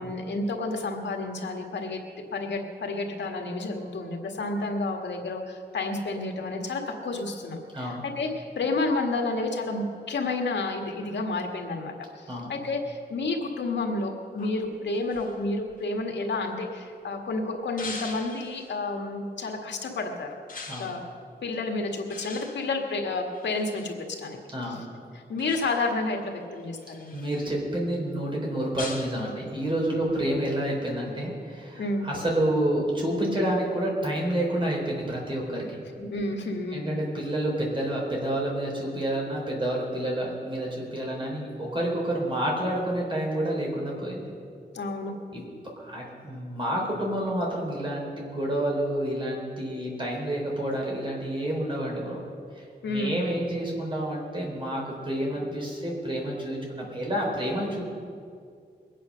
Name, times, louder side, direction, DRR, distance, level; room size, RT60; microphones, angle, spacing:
voice 1, 0.0-2.0 2.3-20.3 20.8-21.0 21.4-24.4 24.7-24.8 25.3-27.2 30.1-30.2 31.8-32.1 35.5-35.6 36.0-36.9 44.7-45.1 52.8-53.1, left 2 dB, 85° left, 2 dB, 1.9 m, -30 dB
sound 1, 14.4-17.0 17.8-18.8 20.5-21.0 22.1-24.0 25.4-26.1 26.6-27.5 28.8-29.2, left 4 dB, 50° left, 1.8 m, -42 dB
voice 2, 27.1-35.8 36.7-44.3 45.3-45.4 45.8-52.2 52.5-57.8, right 1 dB, 25° right, -3 dB, 4.0 m, -29 dB
22.0 x 9.0 x 6.4 m, 2.3 s
wide cardioid pair, 160°, 18 cm